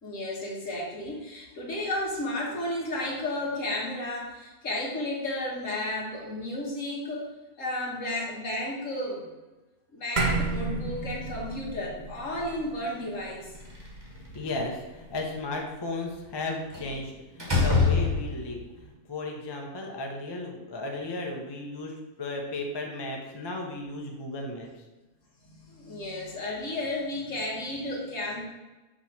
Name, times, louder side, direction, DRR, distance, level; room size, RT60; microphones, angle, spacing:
voice 1, 0.0-7.3 7.6-9.3 9.9-13.6 25.4-28.4, left 1 dB, 55° left, -3 dB, 1.7 m, -33 dB
sound 1, 10.2-14.8, right 3 dB, 40° right, 0.7 m, -32 dB
Slam, 13.6-14.6 16.7-17.0 17.4-18.6, left 4 dB, 15° right, 1.2 m, -25 dB
voice 2, 14.3-24.7, left 2 dB, 30° left, 1 dB, 0.5 m, -35 dB
6.2 x 3.1 x 5.8 m, 1.1 s
omnidirectional pair, 1.7 m